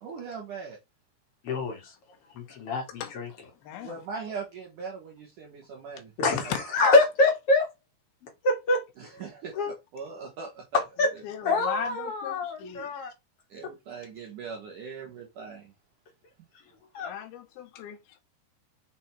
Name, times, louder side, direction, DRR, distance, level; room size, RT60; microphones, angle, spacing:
voice 1, 0.0-0.8 3.8-6.5 9.0-10.8 13.5-15.7, right 5 dB, 60° right, 2.7 m, -40 dB
voice 2, 1.4-1.9 2.3-3.3 6.2-6.4 6.7-7.7 8.4-8.8 9.6-9.7 10.7-11.1 11.4-13.1 16.9-17.1, left 2 dB, 45° left, 2.1 m, -25 dB
voice 3, 2.9-4.1 6.4-6.9 7.2-7.3 11.0-13.1 17.0-18.2, left 10 dB, 75° left, 3.1 m, -38 dB
7.0 x 4.1 x 4.5 m
omnidirectional pair, 4.6 m